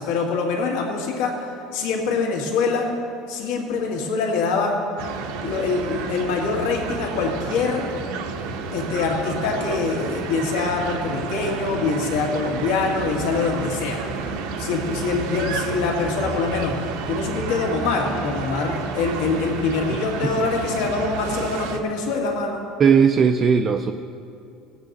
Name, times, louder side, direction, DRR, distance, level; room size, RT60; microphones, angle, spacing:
voice 1, 0.0-1.5 1.7-2.9 3.3-4.7 5.4-7.8 8.7-14.0 14.6-16.7 17.1-22.6, left 4 dB, 85° left, 0 dB, 1.9 m, -24 dB
sound 1, 5.0-21.8, right 4 dB, 75° right, 0.8 m, -30 dB
voice 2, 22.8-23.9, right 6 dB, 25° right, 7 dB, 0.3 m, -17 dB
17.0 x 8.1 x 4.0 m, 2.7 s
cardioid pair, 170°, 0 cm